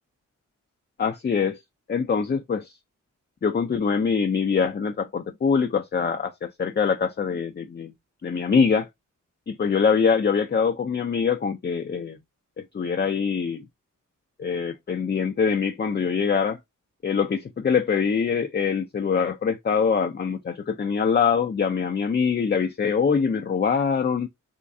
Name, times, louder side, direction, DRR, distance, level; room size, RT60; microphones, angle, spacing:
voice 1, 1.0-1.6 1.9-2.7 3.4-7.9 8.2-8.9 9.5-12.2 12.6-13.7 14.4-16.6 17.0-24.3, left 6 dB, 30° left, 0.5 m, -24 dB
3.6 x 3.1 x 2.6 m
cardioid pair, 45°, 32 cm